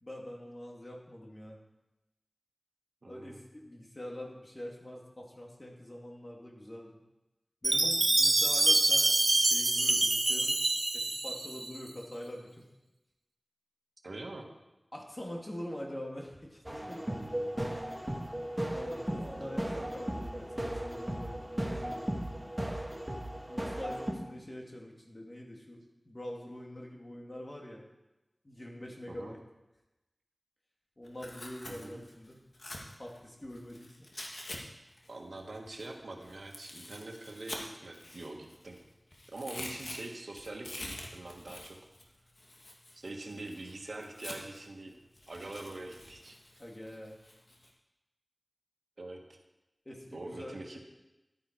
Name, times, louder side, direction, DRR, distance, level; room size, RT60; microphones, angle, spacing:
voice 1, 0.0-1.6 3.1-7.0 7.6-10.6 10.9-12.6 14.9-17.0 18.7-22.1 23.5-27.8 28.4-29.4 31.0-32.4 33.0-33.9 46.6-47.2 49.8-50.8, left 1 dB, 35° left, -1 dB, 2.7 m, -44 dB
voice 2, 3.0-3.4 14.0-14.5 19.1-19.9 29.1-29.3 31.7-32.0 35.1-38.8 39.3-41.8 42.9-44.9 45.3-46.4 46.9-47.0 49.0-49.2 50.1-50.8, right 2 dB, 85° right, 2 dB, 1.5 m, -44 dB
Chime, 7.6-11.8, right 2 dB, 60° right, 0.7 m, -26 dB
sound 1, 16.7-24.1, right 1 dB, 20° right, 1.8 m, -36 dB
Tearing, 31.0-34.6 34.9-38.8 39.1-44.7 45.1-47.7, left 1 dB, 70° left, 1.8 m, -46 dB
12.5 x 9.0 x 4.7 m, 1.0 s
wide cardioid pair, 45°, 0 cm